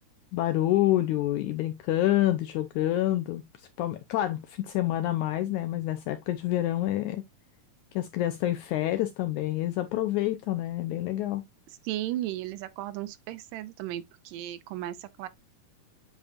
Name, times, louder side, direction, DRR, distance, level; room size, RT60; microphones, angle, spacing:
voice 1, 0.3-3.4 3.8-7.2 7.9-11.4, left 14 dB, 80° left, 1.7 m, -27 dB
voice 2, 11.8-15.3, right 14 dB, 80° right, 2.3 m, -35 dB
8.4 x 5.2 x 2.4 m
omnidirectional pair, 4.0 m